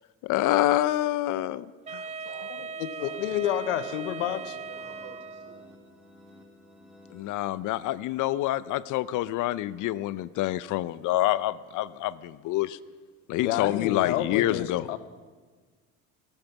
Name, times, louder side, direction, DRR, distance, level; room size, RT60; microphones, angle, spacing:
voice 1, 0.2-1.7 1.9-2.0 7.1-12.8 13.3-14.9, left 15 dB, 55° left, 18 dB, 0.6 m, -27 dB
Wind instrument woodwind instrument, 1.9-5.7, right 5 dB, 20° right, 0.4 m, -39 dB
voice 2, 2.0-2.7 3.0-3.7 4.1-5.7, right 6 dB, 60° right, 3 dB, 4.2 m, -50 dB
voice 3, 2.8-4.5 13.4-15.0, left 11 dB, 90° left, 13 dB, 0.9 m, -29 dB
sound 1, 3.3-8.0, left 1 dB, ahead, 3.0 m, -54 dB
20.0 x 9.1 x 5.8 m, 1.4 s
supercardioid pair, 90°, 36 cm